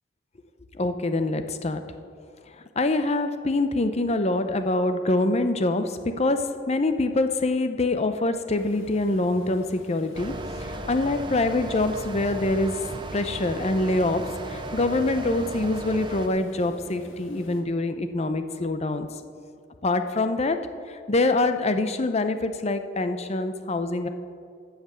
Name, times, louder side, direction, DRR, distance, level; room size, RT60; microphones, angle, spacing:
voice 1, 0.8-1.8 2.8-10.4 10.7-12.8 13.1-19.1 19.8-20.6 21.1-24.1, left 2 dB, 35° left, 9 dB, 0.6 m, -25 dB
Water, 8.5-17.6, left 1 dB, 80° left, 1.8 m, -48 dB
sound 1, 10.1-16.3, right 2 dB, 25° right, 0.6 m, -36 dB
15.0 x 5.9 x 6.7 m, 2.4 s
head